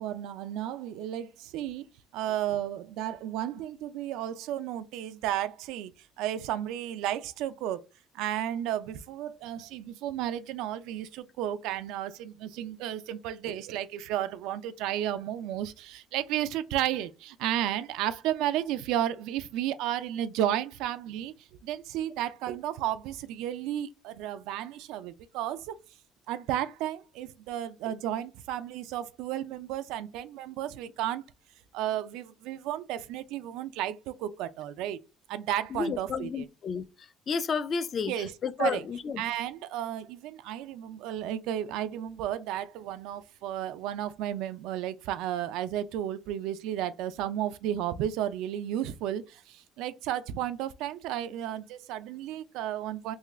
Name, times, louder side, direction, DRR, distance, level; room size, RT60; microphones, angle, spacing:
voice 1, 0.0-1.9 2.1-5.9 6.2-7.8 8.1-21.3 21.6-25.8 26.3-31.2 31.7-35.0 35.3-36.5 38.1-38.9 39.2-53.2, right 11 dB, 80° right, 0.4 m, -33 dB
voice 2, 35.7-36.8 37.3-38.1 38.4-39.2, left 5 dB, 35° left, 0.3 m, -31 dB
3.6 x 2.3 x 3.1 m
cardioid pair, 150°, 0 cm